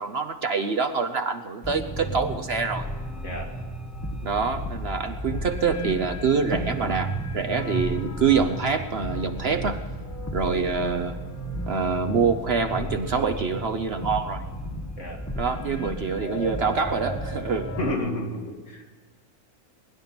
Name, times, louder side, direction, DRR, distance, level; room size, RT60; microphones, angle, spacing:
voice 1, 0.0-2.9 4.2-9.8 10.3-11.2 11.7-14.4 15.4-17.7, right 5 dB, 50° right, 7 dB, 1.0 m, -25 dB
sound 1, 1.6-17.9, right 1 dB, 10° left, 1.4 m, -33 dB
voice 2, 17.8-18.9, left 1 dB, 60° left, 0 dB, 2.9 m, -31 dB
21.0 x 11.0 x 5.9 m, 1.4 s
omnidirectional pair, 1.5 m